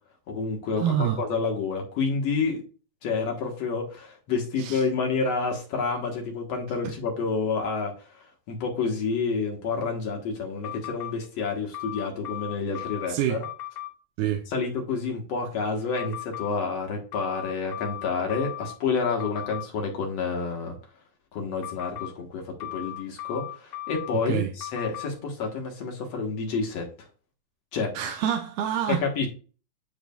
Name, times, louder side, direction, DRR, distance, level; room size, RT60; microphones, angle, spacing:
voice 1, 0.3-2.6 3.0-13.4 14.5-20.8 21.3-26.9 27.7-27.9 29.0-29.3, left 4 dB, 55° left, 1.9 m, -29 dB
voice 2, 0.8-1.2 4.6-4.8 6.8-7.0 13.1-13.4 14.2-14.5 24.3-24.5 27.9-29.1, right 10 dB, 85° right, 2.6 m, -27 dB
sound 1, 10.6-11.1 11.7-13.1 13.4-13.9 16.0-16.5 17.1-18.7 19.2-19.6 21.6-22.1 22.6-24.1 24.6-25.1, left 14 dB, 35° left, 2.5 m, -36 dB
10.0 x 4.9 x 2.3 m
omnidirectional pair, 4.5 m